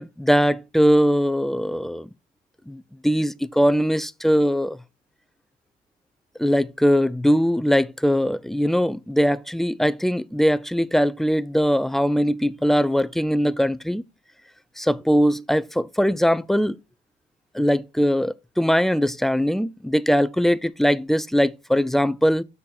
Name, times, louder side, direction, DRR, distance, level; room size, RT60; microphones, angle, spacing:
voice 1, 0.0-2.1 2.7-4.8 6.4-14.0 14.8-16.8 17.5-22.4, equal, ahead, 0.3 m, -21 dB
6.5 x 4.1 x 4.0 m
cardioid pair, 90°, 20 cm